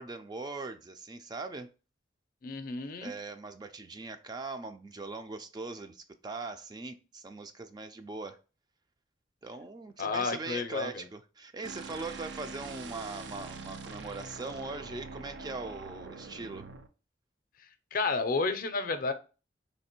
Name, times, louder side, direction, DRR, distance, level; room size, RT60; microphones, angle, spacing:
voice 1, 0.0-1.7 3.0-8.4 9.4-16.7, right 3 dB, 25° right, 0.3 m, -41 dB
voice 2, 2.4-3.1 10.0-11.0 17.9-19.1, left 4 dB, 55° left, 0.5 m, -31 dB
sound 1, 11.6-16.9, right 4 dB, 85° right, 0.5 m, -44 dB
3.2 x 2.9 x 4.4 m
head